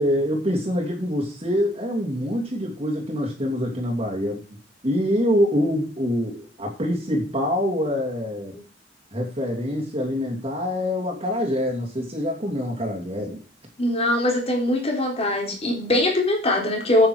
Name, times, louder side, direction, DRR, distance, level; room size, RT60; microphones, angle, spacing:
voice 1, 0.0-4.4 4.8-8.5 9.1-13.4, equal, 35° right, -1 dB, 2.7 m, -25 dB
voice 2, 13.8-17.1, left 1 dB, 35° left, 1 dB, 3.7 m, -22 dB
9.2 x 8.6 x 4.8 m, 0.38 s
head